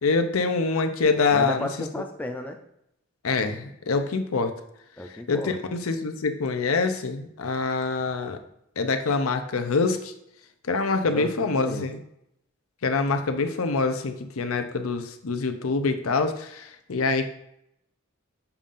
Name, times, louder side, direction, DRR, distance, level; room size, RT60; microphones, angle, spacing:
voice 1, 0.0-1.7 3.2-4.5 5.3-8.4 8.8-10.1 10.7-12.0 12.8-17.3, left 4 dB, 85° left, 7 dB, 0.7 m, -25 dB
voice 2, 1.3-2.6 5.0-5.5 11.1-11.9, left 1 dB, 5° left, 3 dB, 0.4 m, -33 dB
7.0 x 2.5 x 5.4 m, 0.78 s
head